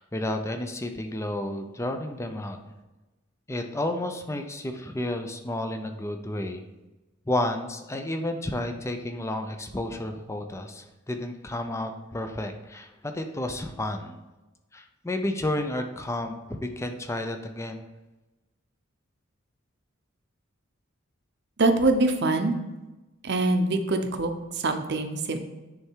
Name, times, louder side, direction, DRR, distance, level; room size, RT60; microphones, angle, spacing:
voice 1, 0.0-2.6 3.5-6.6 7.3-14.2 14.7-17.8, left 1 dB, 15° left, 6 dB, 0.5 m, -31 dB
voice 2, 21.6-22.5 23.2-25.4, right 2 dB, 55° right, 6 dB, 0.7 m, -24 dB
9.8 x 3.4 x 4.5 m, 1.1 s
head